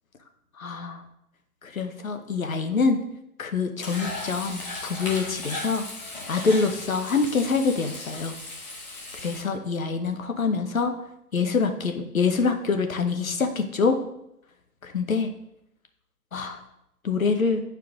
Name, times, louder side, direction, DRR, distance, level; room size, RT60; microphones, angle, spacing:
voice 1, 0.6-1.0 1.6-3.0 3.4-5.9 6.3-8.3 9.2-10.9 11.3-14.0 14.8-15.3 16.3-16.6 17.0-17.6, left 4 dB, 60° left, 6 dB, 0.9 m, -25 dB
Frying (food), 3.8-9.4, left 2 dB, 25° left, 1.3 m, -36 dB
10.0 x 4.6 x 2.4 m, 0.80 s
figure-of-eight pair, 135°, 46 cm